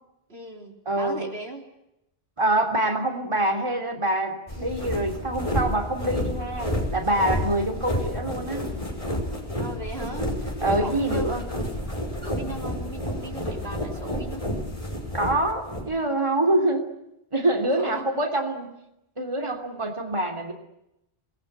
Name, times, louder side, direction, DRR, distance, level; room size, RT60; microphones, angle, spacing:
voice 1, 0.3-1.7 9.5-11.4 12.2-14.5 17.7-18.0, right 2 dB, 80° right, 2 dB, 4.1 m, -38 dB
voice 2, 0.8-1.2 2.4-8.7 10.6-11.5 15.1-16.9 17.3-18.7 19.2-20.5, right 1 dB, 30° right, 3 dB, 3.0 m, -25 dB
sound 1, 4.5-15.9, left 1 dB, 35° left, 5.9 m, -30 dB
28.0 x 20.5 x 8.1 m, 0.85 s
omnidirectional pair, 1.0 m